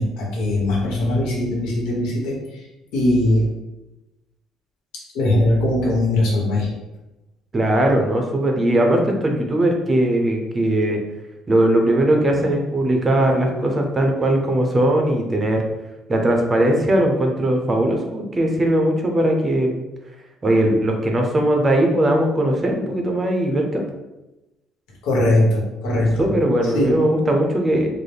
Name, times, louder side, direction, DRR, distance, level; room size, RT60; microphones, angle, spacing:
voice 1, 0.0-2.7 2.9-3.5 4.9-6.7 25.0-26.3 26.7-26.9, left 1 dB, 90° left, -2 dB, 1.1 m, -20 dB
voice 2, 7.5-11.0 11.5-15.6 16.1-19.7 20.4-23.8 26.2-27.9, right 1 dB, 20° right, 2 dB, 0.6 m, -19 dB
3.9 x 2.1 x 3.3 m, 1.0 s
cardioid pair, 120°, 0 cm